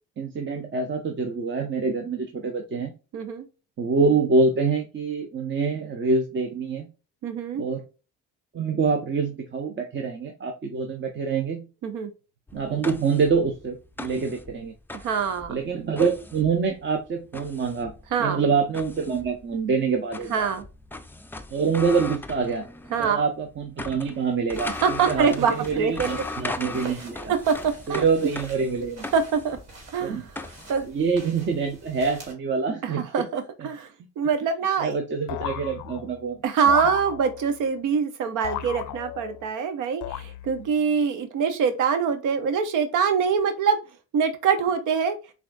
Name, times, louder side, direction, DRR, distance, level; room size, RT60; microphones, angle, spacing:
voice 1, 0.2-2.9 3.8-6.9 7.6-7.8 8.5-11.7 12.5-14.7 15.5-17.9 18.2-20.5 21.5-22.6 23.0-27.3 27.9-29.1 30.0-30.2 30.9-33.1 33.6-33.7 34.8-36.4, right 4 dB, 40° right, 3 dB, 0.7 m, -25 dB
voice 2, 3.1-3.5 7.2-7.6 11.8-12.1 14.9-15.6 18.1-18.4 20.3-20.6 22.9-23.2 24.7-26.1 27.3-28.0 29.1-29.6 29.9-30.2 30.7-30.9 32.8-33.9 34.2-35.0 36.4-43.8 44.1-45.2, right 6 dB, 85° right, 9 dB, 0.6 m, -24 dB
sound 1, 12.5-23.2 23.5-30.9, left 2 dB, 5° left, 0.4 m, -39 dB
sound 2, 24.5-32.3, right 3 dB, 60° right, 1.9 m, -46 dB
sound 3, 35.3-36.2 36.7-37.6 38.4-39.5 40.0-40.7, left 13 dB, 80° left, 0.4 m, -35 dB
5.8 x 2.4 x 2.5 m, 0.32 s
cardioid pair, 90°, 30 cm